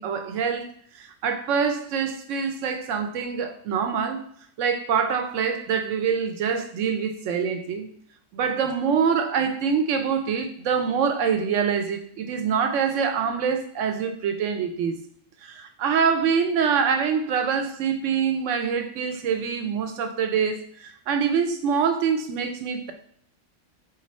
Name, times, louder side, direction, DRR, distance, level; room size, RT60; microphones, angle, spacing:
voice 1, 0.0-4.2 4.6-7.9 8.3-15.0 15.4-22.9, right 6 dB, 70° right, 0.9 m, -25 dB
3.9 x 2.6 x 4.1 m
omnidirectional pair, 1.4 m